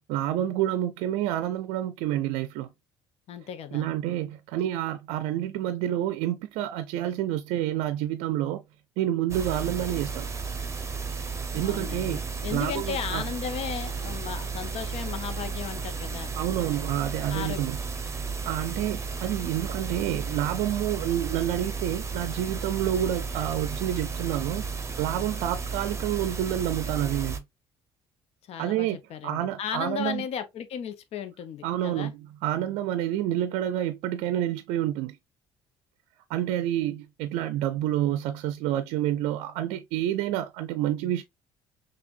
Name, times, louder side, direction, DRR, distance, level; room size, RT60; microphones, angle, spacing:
voice 1, 0.1-2.7 3.7-8.6 9.0-10.3 11.5-12.2 12.5-13.2 16.4-17.8 18.4-24.6 25.0-27.4 28.6-29.0 29.2-30.2 31.6-35.2 36.3-41.2, right 12 dB, 70° right, 0.5 m, -28 dB
voice 2, 3.3-3.9 11.5-16.3 17.3-17.6 28.5-32.1, left 8 dB, 55° left, 0.8 m, -35 dB
sound 1, 9.3-27.4, right 5 dB, 25° right, 0.8 m, -33 dB
5.8 x 2.4 x 2.5 m
hypercardioid pair, 55°, 12 cm